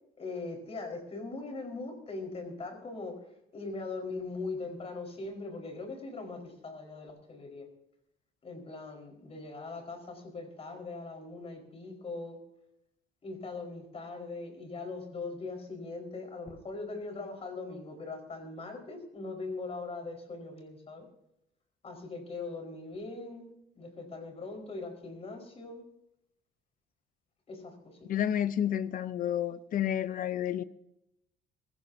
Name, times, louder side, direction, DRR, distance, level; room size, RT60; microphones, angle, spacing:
voice 1, 0.2-3.2 3.5-7.7 8.4-12.4 13.2-21.1 21.8-23.5 23.7-25.8 27.5-28.2, left 3 dB, 35° left, 4.7 m, -41 dB
voice 2, 28.1-30.6, left 10 dB, 55° left, 0.7 m, -30 dB
23.0 x 15.0 x 2.8 m
cardioid pair, 110°, 17 cm